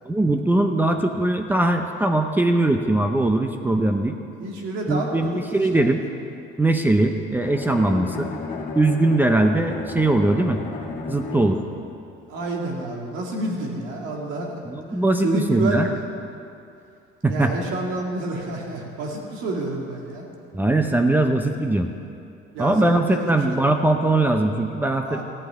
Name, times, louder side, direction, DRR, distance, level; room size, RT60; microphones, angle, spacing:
voice 1, 0.1-4.2 4.9-6.0 6.6-8.3 8.7-10.6 11.1-11.6 14.7-15.9 17.2-17.5 20.5-21.9 22.6-25.2, right 2 dB, 10° right, 5 dB, 0.6 m, -20 dB
voice 2, 4.4-5.4 5.7-5.9 12.3-14.6 14.9-15.9 17.3-20.3 22.5-23.6 25.0-25.2, right 2 dB, 80° right, -1 dB, 2.2 m, -29 dB
Bowed string instrument, 7.4-11.8, left 4 dB, 40° left, 1.9 m, -34 dB
14.0 x 5.9 x 9.9 m, 2.6 s
cardioid pair, 130°, 20 cm